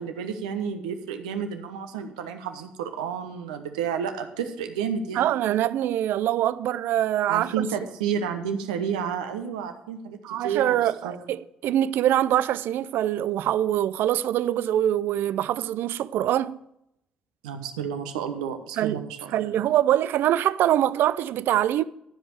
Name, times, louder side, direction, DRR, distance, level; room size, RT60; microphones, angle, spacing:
voice 1, 0.0-5.3 7.3-11.3 17.4-19.5, right 7 dB, 90° right, 1.0 m, -31 dB
voice 2, 5.1-7.6 10.2-16.6 18.8-21.8, right 12 dB, 65° right, 0.4 m, -24 dB
13.0 x 5.2 x 7.6 m
hypercardioid pair, 55°, 4 cm